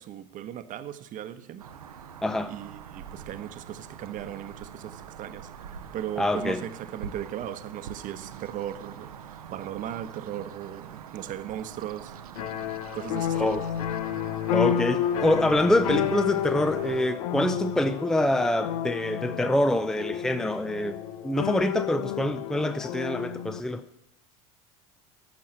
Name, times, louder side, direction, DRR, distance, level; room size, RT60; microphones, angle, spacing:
voice 1, 0.0-1.7 2.5-12.2 12.9-13.6, right 11 dB, 45° right, 1.0 m, -37 dB
sound 1, 1.6-17.0, right 8 dB, 85° right, 0.8 m, -44 dB
voice 2, 2.2-2.5 6.2-6.6 13.3-13.7 14.5-21.0 21.2-23.8, left 1 dB, 5° left, 0.6 m, -25 dB
sound 2, 12.4-23.6, left 10 dB, 75° left, 0.7 m, -30 dB
13.5 x 6.3 x 7.7 m
hypercardioid pair, 80°, 18 cm